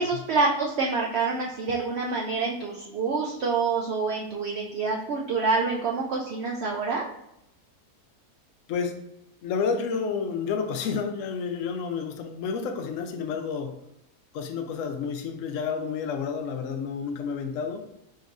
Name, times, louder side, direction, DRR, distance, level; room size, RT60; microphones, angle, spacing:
voice 1, 0.0-7.0, right 4 dB, 75° right, -1 dB, 0.6 m, -27 dB
voice 2, 8.7-9.0 9.4-13.8 14.3-17.8, left 6 dB, 70° left, 5 dB, 0.8 m, -30 dB
5.2 x 2.7 x 2.6 m, 0.82 s
omnidirectional pair, 1.7 m